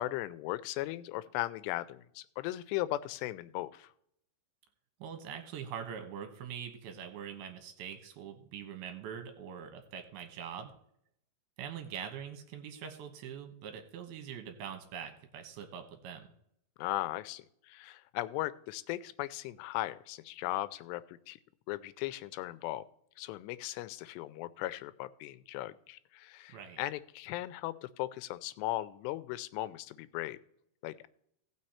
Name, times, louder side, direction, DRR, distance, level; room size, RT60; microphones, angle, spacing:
voice 1, 0.0-3.9 16.8-21.4 21.7-22.8 23.2-30.4 30.8-31.1, left 16 dB, 90° left, 15 dB, 2.7 m, -37 dB
voice 2, 5.0-10.7 11.6-16.3 26.5-26.8, right 8 dB, 75° right, 6 dB, 2.8 m, -43 dB
16.5 x 6.1 x 4.2 m, 0.71 s
omnidirectional pair, 4.8 m